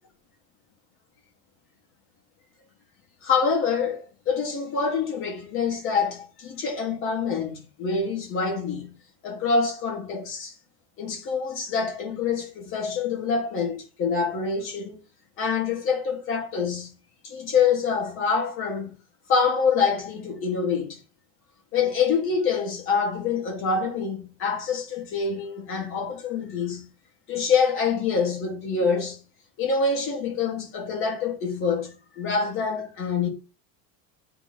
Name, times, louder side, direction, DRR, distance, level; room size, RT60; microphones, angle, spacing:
voice 1, 3.2-8.9 9.2-10.5 11.0-15.0 15.4-16.9 17.2-18.9 19.3-21.0 21.7-26.9 27.3-29.2 29.6-33.3, left 5 dB, 35° left, 3.2 m, -26 dB
8.9 x 5.2 x 6.1 m
cardioid pair, 175°, 36 cm